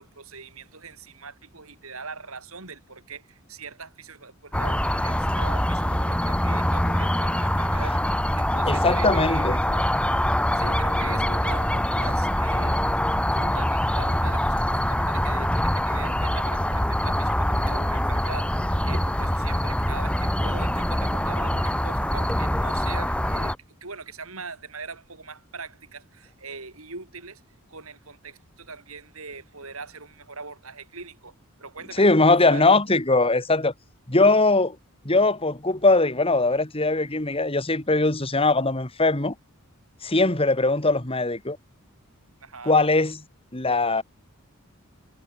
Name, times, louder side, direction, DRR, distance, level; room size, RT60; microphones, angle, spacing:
voice 1, 0.0-9.9 10.5-12.8 13.3-23.5 23.8-27.4 27.7-31.3 31.6-32.0 32.5-32.6 42.4-42.8, right 4 dB, 75° right, 6.4 m, -41 dB
sound 1, 4.5-23.6, left 1 dB, 5° left, 2.4 m, -24 dB
voice 2, 8.7-9.6 18.9-19.0 32.0-33.7 34.1-34.8 35.0-39.3 40.0-41.6 42.6-43.2 43.5-44.0, left 2 dB, 25° left, 2.4 m, -21 dB
head